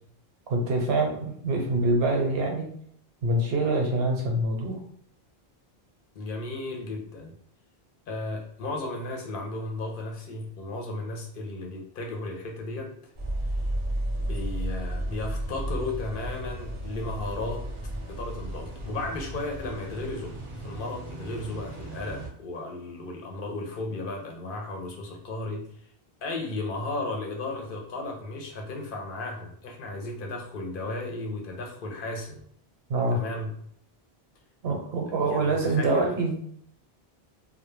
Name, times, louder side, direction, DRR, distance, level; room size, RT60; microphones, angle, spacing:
voice 1, 0.5-2.7 3.2-4.8 32.9-33.2 34.6-36.3, right 2 dB, 80° right, 2 dB, 0.9 m, -25 dB
voice 2, 6.2-7.3 8.1-12.9 14.2-17.7 18.1-25.7 26.2-32.4 33.1-33.5 35.3-36.2, left 2 dB, 65° left, 1 dB, 0.7 m, -34 dB
sound 1, 13.2-22.3, right 1 dB, 45° right, 0.4 m, -34 dB
2.1 x 2.0 x 3.1 m, 0.66 s
omnidirectional pair, 1.0 m